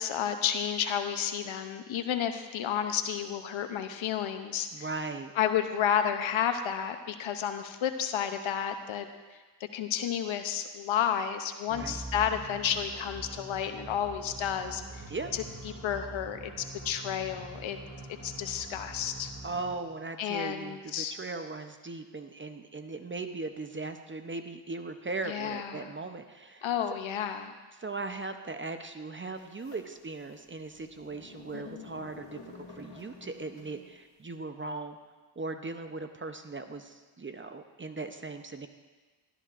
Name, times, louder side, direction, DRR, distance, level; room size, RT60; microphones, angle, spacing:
voice 1, 0.0-4.9 5.4-9.1 9.7-14.8 15.3-17.8 18.2-19.3 20.2-21.2 25.2-25.9 26.6-27.5 31.5-31.8, left 9 dB, 85° left, 8 dB, 0.8 m, -31 dB
voice 2, 4.7-5.3 11.7-12.0 15.1-15.3 19.4-26.7 27.8-35.0 35.4-38.7, right 3 dB, 25° right, 7 dB, 0.7 m, -38 dB
sound 1, 11.7-19.9, right 2 dB, 80° right, 2.4 m, -44 dB
sound 2, 29.4-34.0, left 3 dB, 65° left, 2.1 m, -51 dB
13.0 x 12.5 x 2.5 m, 1.3 s
cardioid pair, 70°, 46 cm